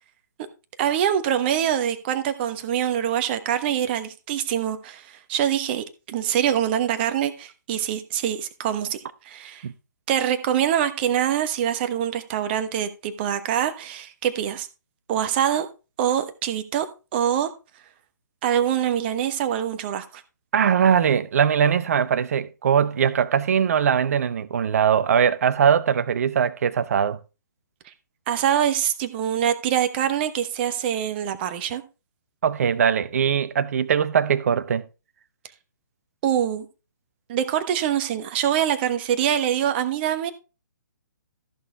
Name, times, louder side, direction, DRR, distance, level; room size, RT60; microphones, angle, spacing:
voice 1, 0.8-9.0 9.2-9.6 10.1-14.7 15.1-15.7 16.0-16.8 17.1-17.5 18.4-20.2 28.3-31.8 36.2-36.7 37.3-40.3, right 10 dB, 30° right, 1.1 m, -24 dB
voice 2, 20.5-27.2 32.4-34.8, right 8 dB, 50° right, 0.8 m, -21 dB
14.0 x 6.4 x 3.4 m
figure-of-eight pair, 130°, 11 cm